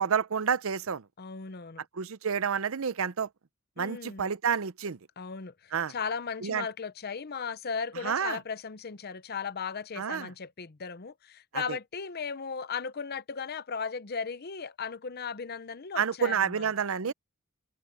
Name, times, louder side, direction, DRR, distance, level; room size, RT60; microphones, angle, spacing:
voice 1, 0.0-1.0 1.9-3.3 3.8-5.0 5.7-5.9 6.4-6.6 8.0-8.4 10.0-10.3 11.5-11.8 16.0-17.1, right 7 dB, 70° right, 0.6 m, -29 dB
voice 2, 1.2-1.8 3.8-4.3 5.2-16.7 17.1-17.2, left 5 dB, 45° left, 0.7 m, -36 dB
head